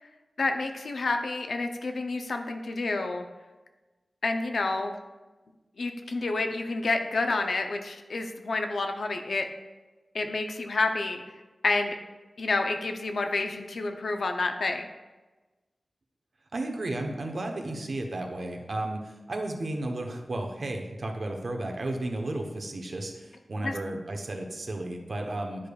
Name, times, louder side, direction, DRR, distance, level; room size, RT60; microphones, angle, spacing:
voice 1, 0.4-3.3 4.2-4.9 5.8-9.5 10.1-11.2 11.6-12.0 12.4-14.8 23.6-23.7, left 3 dB, 75° left, 5 dB, 0.6 m, -29 dB
voice 2, 16.5-25.7, right 2 dB, 60° right, 2 dB, 0.9 m, -33 dB
10.0 x 5.0 x 2.3 m, 1.2 s
wide cardioid pair, 90°, 0 cm